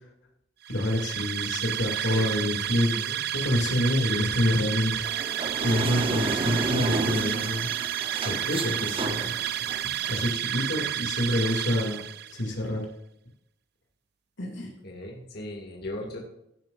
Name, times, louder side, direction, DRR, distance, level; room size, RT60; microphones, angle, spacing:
sound 1, 0.6-12.5, right 11 dB, 60° right, 0.5 m, -31 dB
voice 1, 0.7-2.9 3.3-5.1 5.6-7.7 8.2-9.3 10.1-12.0 12.3-12.9 14.4-14.7, left 1 dB, 85° left, 1 dB, 2.5 m, -27 dB
voice 2, 2.9-3.2 14.8-16.2, left 1 dB, 60° left, 0 dB, 2.1 m, -37 dB
sound 2, 5.0-10.3, right 3 dB, 30° right, 0.7 m, -32 dB
16.5 x 7.9 x 2.5 m, 0.81 s
head